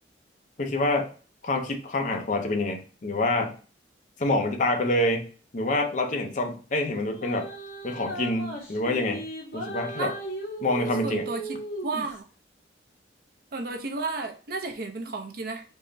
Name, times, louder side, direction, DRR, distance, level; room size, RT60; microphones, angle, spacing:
voice 1, 0.6-1.1 1.4-3.5 4.2-5.3 5.5-7.5 7.8-9.2 9.5-10.1 10.6-11.3, left 2 dB, 45° left, 4 dB, 0.5 m, -26 dB
sound 1, 7.1-12.2, right 2 dB, 65° left, 1.4 m, -36 dB
voice 2, 11.0-12.3 13.5-15.6, right 3 dB, 55° right, 5 dB, 0.5 m, -33 dB
3.6 x 2.1 x 3.8 m, 0.38 s
head